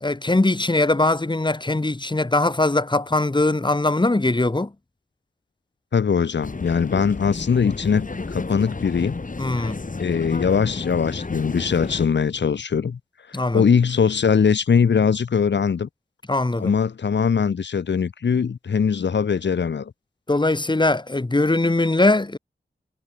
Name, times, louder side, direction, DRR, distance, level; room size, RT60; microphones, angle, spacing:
voice 1, 0.0-4.7 9.4-9.8 13.3-13.6 16.3-16.7 20.3-22.4, left 2 dB, 25° left, 2.5 m, -21 dB
voice 2, 5.9-9.2 10.0-13.0 13.3-15.9 16.6-19.9, left 6 dB, 85° left, 1.6 m, -21 dB
sound 1, 6.4-12.1, left 3 dB, 45° left, 6.7 m, -32 dB
wide cardioid pair, 60°, 18 cm